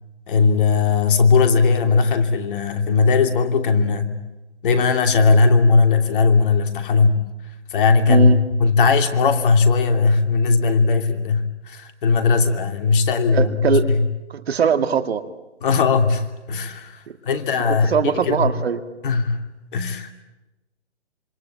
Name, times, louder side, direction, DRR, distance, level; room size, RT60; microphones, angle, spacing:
voice 1, 0.3-4.1 4.6-7.2 7.7-14.0 15.6-17.9 18.2-18.5 19.0-19.4 19.7-20.1, left 4 dB, 50° left, 6 dB, 2.9 m, -18 dB
voice 2, 8.1-8.4 13.3-13.9 14.3-15.2 17.7-18.8, right 7 dB, 60° right, 10 dB, 2.3 m, -21 dB
26.5 x 25.5 x 8.8 m, 1.0 s
hypercardioid pair, 140°, 34 cm